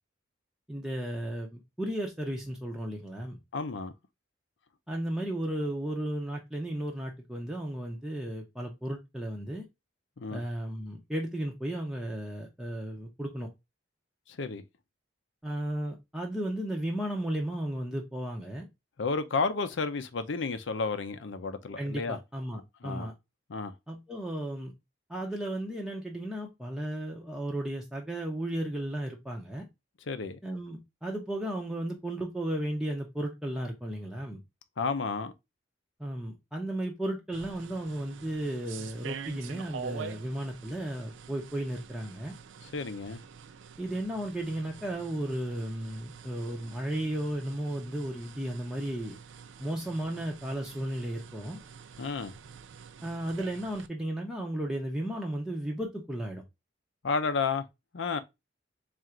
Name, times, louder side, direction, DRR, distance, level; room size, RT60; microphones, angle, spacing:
voice 1, 0.7-3.4 4.9-9.6 10.3-13.5 15.4-18.7 21.8-23.1 23.9-24.7 25.1-29.6 30.4-34.4 36.0-42.3 43.8-49.2 49.6-51.6 53.0-56.4, right 1 dB, 5° right, 0.6 m, -34 dB
voice 2, 3.5-3.9 10.2-10.4 14.3-14.6 19.0-22.2 22.8-23.1 23.5-23.7 30.1-30.4 34.8-35.3 42.6-43.2 52.0-52.3 57.0-57.6 57.9-58.2, left 4 dB, 70° left, 0.6 m, -31 dB
sound 1, 37.3-53.9, right 6 dB, 75° right, 0.4 m, -46 dB
3.7 x 2.5 x 4.3 m
head